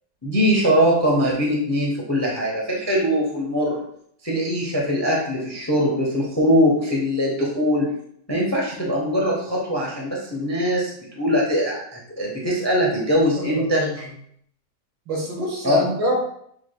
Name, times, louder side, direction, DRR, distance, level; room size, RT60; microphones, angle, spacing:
voice 1, 0.2-3.8 4.2-7.9 8.3-14.0 15.6-15.8, equal, 20° left, -3 dB, 0.5 m, -22 dB
voice 2, 13.4-14.1 15.1-16.2, equal, 90° right, -1 dB, 1.9 m, -25 dB
6.8 x 3.2 x 2.2 m, 0.68 s
omnidirectional pair, 1.9 m